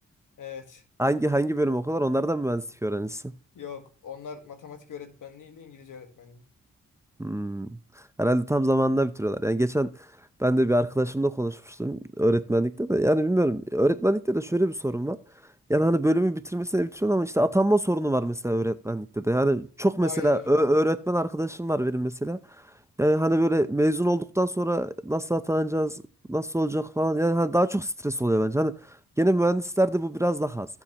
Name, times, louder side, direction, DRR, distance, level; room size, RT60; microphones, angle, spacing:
voice 1, 0.4-0.8 3.5-6.4 20.0-20.7, left 7 dB, 75° left, 1.5 m, -41 dB
voice 2, 1.0-3.3 7.2-7.7 8.2-9.9 10.4-15.2 15.7-22.4 23.0-26.0 26.3-28.7 29.2-30.7, right 1 dB, 10° right, 0.6 m, -24 dB
15.0 x 7.1 x 2.9 m
cardioid pair, 55°, 32 cm